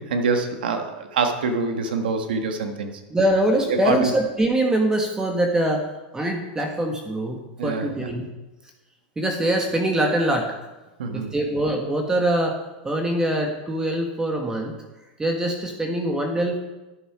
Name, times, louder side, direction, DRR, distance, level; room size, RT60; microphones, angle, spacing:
voice 1, 0.0-2.9 3.7-4.1 7.6-8.1 11.0-11.3, right 4 dB, 85° right, 6 dB, 1.3 m, -25 dB
voice 2, 3.1-5.8 6.1-8.3 9.2-10.5 11.1-12.6 12.8-14.7 15.2-16.6, right 1 dB, 15° right, 2 dB, 1.5 m, -23 dB
11.0 x 6.8 x 4.9 m, 1.1 s
hypercardioid pair, 110°, 5 cm